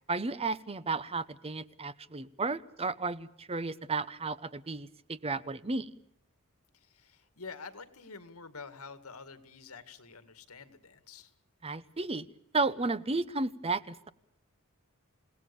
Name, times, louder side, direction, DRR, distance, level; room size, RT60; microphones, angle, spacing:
voice 1, 0.1-5.9 11.6-12.3 12.5-14.1, right 3 dB, 25° right, 15 dB, 0.8 m, -33 dB
voice 2, 6.7-11.3, left 4 dB, 85° left, 11 dB, 2.1 m, -48 dB
29.0 x 18.0 x 7.0 m, 0.73 s
head